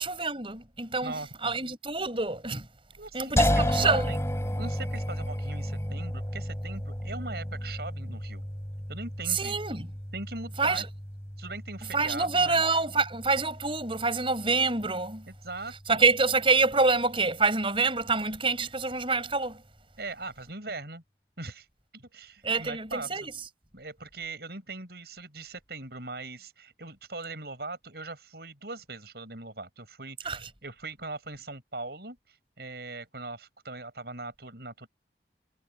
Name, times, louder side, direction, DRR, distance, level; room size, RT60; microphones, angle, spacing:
voice 1, 0.0-1.1 1.4-2.7 3.1-4.1 9.3-9.9 10.6-10.9 11.9-15.3 15.9-19.6 22.4-23.3 30.2-30.5, right 3 dB, 30° right, 6.2 m, -26 dB
voice 2, 1.0-1.6 3.0-4.2 4.6-8.5 8.9-9.6 10.1-10.8 11.4-12.6 15.3-16.1 20.0-21.0 21.4-21.7 21.9-23.3 23.7-34.9, right 3 dB, 60° right, 6.3 m, -40 dB
sound 1, 3.4-16.4, left 1 dB, 15° left, 4.0 m, -33 dB
head